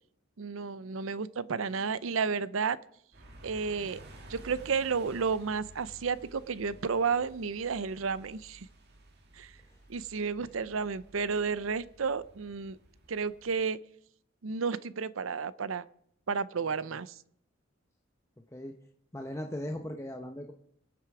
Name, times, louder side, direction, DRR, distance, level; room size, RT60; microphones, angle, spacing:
voice 1, 0.4-2.8 3.4-4.0 4.3-8.7 9.4-9.5 9.9-12.8 13.1-13.8 14.4-15.8 16.3-17.1, right 5 dB, 75° right, 17 dB, 0.6 m, -32 dB
sound 1, 3.1-13.6, right 1 dB, 55° right, 2.2 m, -53 dB
voice 2, 19.1-20.5, left 1 dB, 15° left, 3 dB, 0.8 m, -39 dB
23.0 x 8.2 x 4.9 m, 0.69 s
head